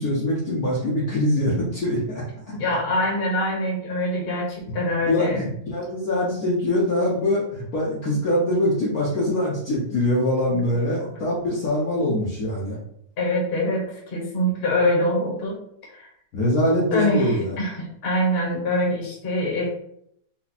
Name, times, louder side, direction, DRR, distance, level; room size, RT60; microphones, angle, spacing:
voice 1, 0.0-2.2 5.0-12.8 16.3-17.6, left 1 dB, 55° left, -6 dB, 1.2 m, -23 dB
voice 2, 2.6-5.4 10.5-10.6 13.2-15.5 15.9-16.1 16.9-17.7 18.0-19.6, left 1 dB, 35° left, -3 dB, 1.2 m, -24 dB
4.4 x 2.3 x 4.0 m, 0.71 s
omnidirectional pair, 2.2 m